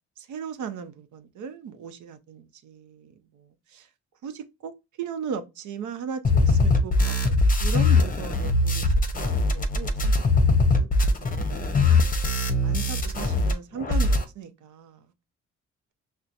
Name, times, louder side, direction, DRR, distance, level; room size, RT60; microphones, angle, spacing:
voice 1, 0.2-3.9 4.2-8.9 9.2-10.4 11.2-12.1 12.6-15.1, right 7 dB, 75° right, 0.7 m, -37 dB
sound 1, 6.2-13.5 13.8-14.2, left 2 dB, 30° left, 0.7 m, -21 dB
5.5 x 2.2 x 2.5 m
cardioid pair, 90°, 30 cm